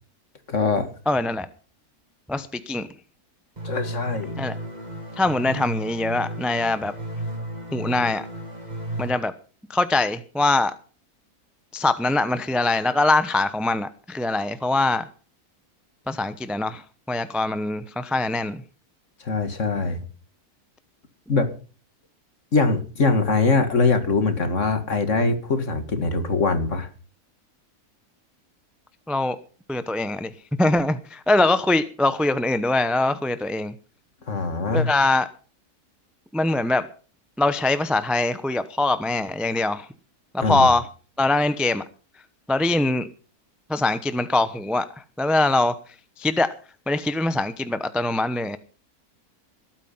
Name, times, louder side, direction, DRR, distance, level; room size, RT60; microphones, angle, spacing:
voice 1, 0.5-0.9 3.6-4.4 19.2-20.0 21.3-21.5 22.5-26.9 34.3-34.9 40.4-40.7, left 3 dB, 50° left, 9 dB, 2.3 m, -22 dB
voice 2, 1.1-1.5 2.3-2.9 4.4-4.6 5.2-6.9 7.7-8.3 9.0-9.3 9.7-10.7 11.7-15.1 16.1-16.8 17.1-18.6 29.1-29.4 29.7-30.3 30.6-33.7 34.7-35.3 36.3-36.9 37.4-39.9 40.3-40.8 41.2-41.8 42.5-43.1 43.7-44.9 45.2-45.7 46.2-46.5 46.9-48.6, left 2 dB, ahead, 12 dB, 0.6 m, -23 dB
sound 1, 3.6-9.1, right 1 dB, 25° right, 2.8 m, -33 dB
20.5 x 9.1 x 5.7 m, 0.38 s
omnidirectional pair, 1.6 m